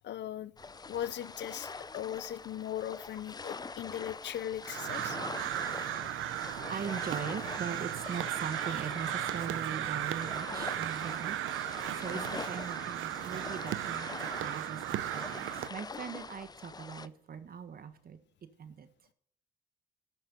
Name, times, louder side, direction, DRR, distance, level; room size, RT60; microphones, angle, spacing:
voice 1, 0.0-0.5 0.9-5.2, left 11 dB, 65° left, 0.6 m, -38 dB
sound 1, 0.6-17.1, left 4 dB, 20° left, 0.5 m, -44 dB
Crow, 4.6-15.7, right 13 dB, 85° right, 0.8 m, -36 dB
voice 2, 6.7-11.4 11.7-18.2 18.6-18.9, right 7 dB, 50° right, 1.5 m, -40 dB
12.0 x 6.7 x 9.1 m
cardioid pair, 90°, 20 cm